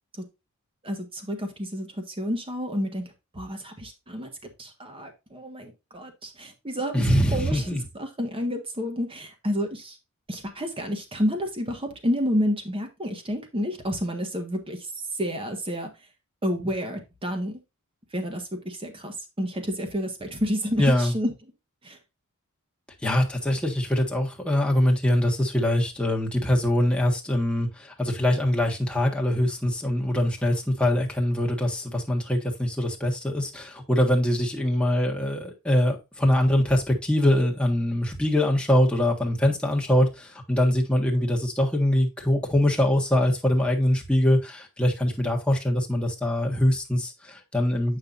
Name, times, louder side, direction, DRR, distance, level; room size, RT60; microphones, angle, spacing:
voice 1, 0.8-4.3 4.6-7.0 7.3-7.7 8.0-10.0 10.3-14.8 15.2-15.9 16.4-17.6 18.1-21.3 21.8-22.0, equal, 25° right, 1.6 m, -30 dB
voice 2, 6.9-7.8 20.8-21.1 23.0-48.0, left 1 dB, 5° left, 1.5 m, -23 dB
8.7 x 5.7 x 2.6 m
head